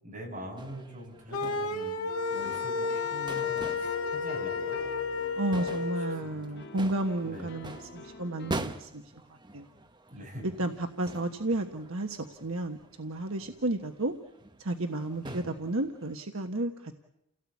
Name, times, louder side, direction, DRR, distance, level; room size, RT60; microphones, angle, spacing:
voice 1, 0.0-4.8 5.5-5.7 6.2-6.6 7.2-7.7 10.1-10.5 15.2-15.5, equal, 40° right, 0 dB, 7.7 m, -44 dB
sound 1, 0.6-16.2, right 2 dB, 20° right, 0.9 m, -45 dB
sound 2, 1.3-6.2, left 5 dB, 80° left, 1.9 m, -32 dB
sound 3, 2.1-8.5, left 2 dB, 50° left, 1.5 m, -46 dB
voice 2, 5.4-9.0 9.3-9.7 10.4-14.1 14.6-16.9, right 2 dB, 70° right, 5 dB, 1.3 m, -32 dB
29.5 x 17.5 x 8.5 m, 0.85 s
head